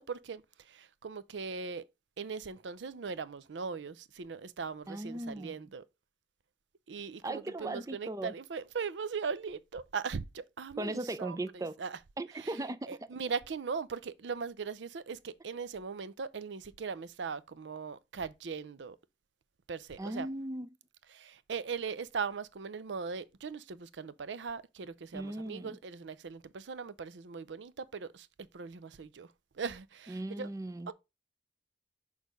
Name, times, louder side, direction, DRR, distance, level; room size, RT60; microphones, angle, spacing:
voice 1, 0.0-1.8 2.2-5.8 6.9-12.0 12.4-12.5 12.9-19.0 19.7-20.3 21.1-28.3 28.5-29.3 29.6-30.5 30.9-31.0, right 5 dB, 85° right, 0.5 m, -39 dB
voice 2, 4.9-5.6 7.2-8.3 10.8-11.7 12.2-12.9 20.0-20.7 25.1-25.8 30.1-30.9, right 2 dB, 20° right, 0.4 m, -38 dB
6.4 x 3.4 x 5.2 m
head